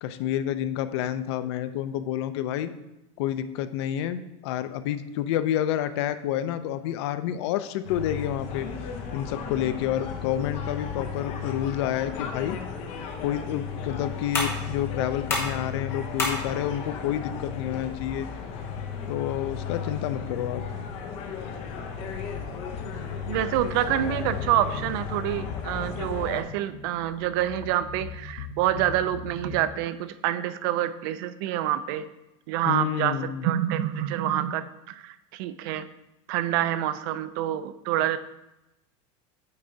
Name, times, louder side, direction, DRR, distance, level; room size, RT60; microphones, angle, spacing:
voice 1, 0.0-2.7 3.2-8.7 9.1-12.6 13.2-18.3 19.1-20.6 32.7-33.5, left 11 dB, 60° left, 12 dB, 0.5 m, -29 dB
sound 1, 7.8-26.4, left 6 dB, 40° left, 0.8 m, -35 dB
sound 2, 12.8-19.8, left 2 dB, 15° left, 1.2 m, -35 dB
sound 3, 22.3-29.6, left 5 dB, 80° left, 0.9 m, -41 dB
voice 2, 23.3-32.1 32.5-33.2 33.4-35.9 36.3-38.2, right 12 dB, 45° right, 13 dB, 0.4 m, -27 dB
8.6 x 4.5 x 3.8 m, 0.93 s
supercardioid pair, 175°, 16 cm